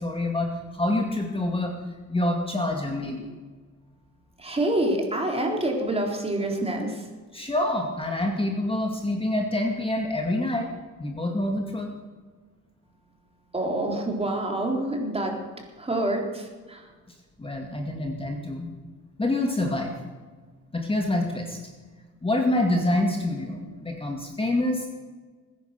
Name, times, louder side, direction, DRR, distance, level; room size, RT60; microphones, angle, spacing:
voice 1, 0.0-1.8 2.1-3.3 7.3-10.7 11.0-11.9 17.4-18.7 19.2-19.9 20.7-21.6 22.2-24.9, left 1 dB, 20° left, 2 dB, 2.2 m, -26 dB
voice 2, 4.4-7.1 13.4-15.4 15.8-16.9, right 1 dB, 20° right, 1 dB, 3.8 m, -27 dB
20.0 x 10.5 x 6.8 m, 1.4 s
cardioid pair, 90°, 30 cm